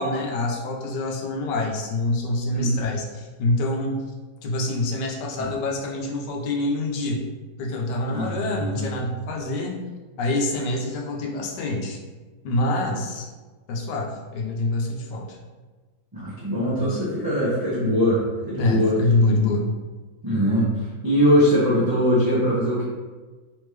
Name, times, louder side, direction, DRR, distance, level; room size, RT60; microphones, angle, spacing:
voice 1, 0.0-3.9 4.4-7.2 7.6-9.8 10.2-12.0 12.4-13.3 13.7-15.4 18.6-19.7, left 2 dB, 80° left, 0 dB, 1.3 m, -25 dB
voice 2, 8.1-9.0 16.1-18.9 20.2-22.8, equal, 25° right, -9 dB, 0.5 m, -22 dB
3.5 x 3.5 x 3.2 m, 1.3 s
omnidirectional pair, 1.8 m